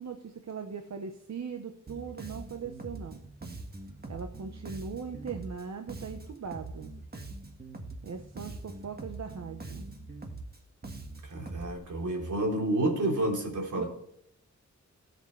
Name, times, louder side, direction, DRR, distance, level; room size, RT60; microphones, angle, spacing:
voice 1, 0.0-3.2 4.1-6.9 8.0-9.9 13.7-13.8, right 6 dB, 65° right, 5 dB, 1.0 m, -40 dB
Bass guitar, 1.9-11.8, right 2 dB, 30° right, 1.6 m, -43 dB
voice 2, 11.2-13.9, right 1 dB, 80° right, 1 dB, 3.4 m, -29 dB
18.0 x 8.1 x 3.3 m, 0.72 s
wide cardioid pair, 150°, 30 cm